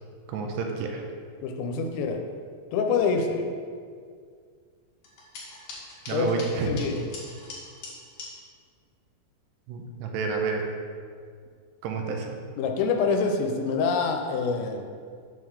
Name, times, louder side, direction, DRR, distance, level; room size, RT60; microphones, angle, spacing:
voice 1, 0.3-1.0 6.1-6.7 9.7-10.6 11.8-12.4, right 5 dB, 80° right, 2 dB, 2.8 m, -29 dB
voice 2, 1.4-2.2 2.7-3.5 6.1-7.0 12.6-14.9, left 5 dB, 85° left, 4 dB, 2.9 m, -26 dB
sound 1, 5.0-8.3, left 3 dB, 60° left, 2.8 m, -42 dB
7.4 x 3.8 x 6.3 m, 2.1 s
omnidirectional pair, 5.1 m